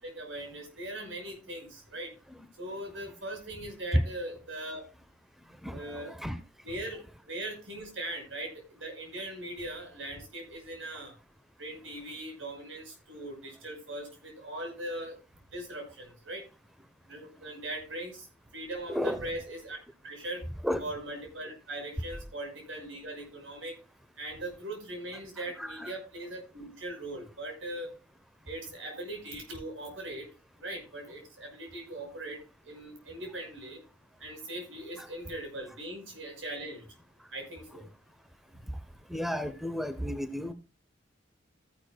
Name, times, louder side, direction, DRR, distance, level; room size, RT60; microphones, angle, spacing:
voice 1, 0.0-2.1 2.6-4.8 5.7-6.3 6.6-11.1 11.6-15.2 15.5-16.4 17.1-18.3 18.5-19.8 20.0-20.4 20.8-23.7 24.2-27.9 28.5-30.3 30.6-32.4 32.6-33.8 34.2-36.9 37.3-37.9, right 1 dB, 85° right, 3 dB, 5.8 m, -40 dB
voice 2, 5.6-6.4 18.9-19.2 20.6-20.8 25.4-25.9 35.0-35.1 38.7-38.8 39.1-40.5, equal, ahead, 10 dB, 0.7 m, -32 dB
14.5 x 11.0 x 2.2 m, 0.31 s
head